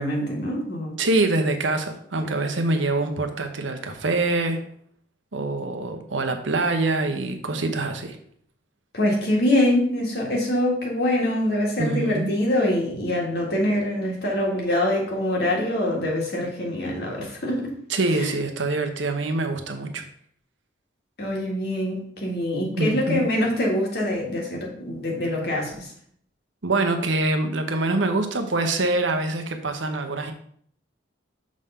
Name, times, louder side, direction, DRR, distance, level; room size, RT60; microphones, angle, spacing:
voice 1, 0.0-0.9 8.9-17.7 18.2-18.3 21.2-25.9, left 1 dB, 55° left, -1 dB, 1.8 m, -24 dB
voice 2, 1.0-4.6 5.3-8.2 11.8-12.3 17.9-20.0 22.8-23.3 26.6-30.3, right 2 dB, 80° right, 6 dB, 0.9 m, -25 dB
6.3 x 3.7 x 5.5 m, 0.62 s
head